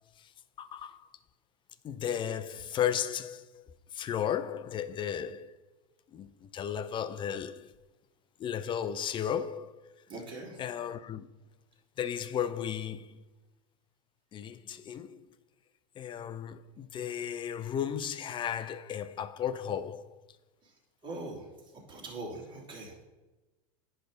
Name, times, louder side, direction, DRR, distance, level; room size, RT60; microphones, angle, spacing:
voice 1, 0.6-1.1 1.8-3.7 3.9-5.6 6.1-7.7 8.4-9.8 10.6-11.3 12.0-13.2 14.3-15.3 16.0-20.2, left 9 dB, 25° left, 0.5 m, -34 dB
voice 2, 10.1-10.6 21.0-21.5 21.9-22.9, right 2 dB, 25° right, 2.7 m, -41 dB
10.0 x 3.4 x 5.1 m
hypercardioid pair, 90°, 19 cm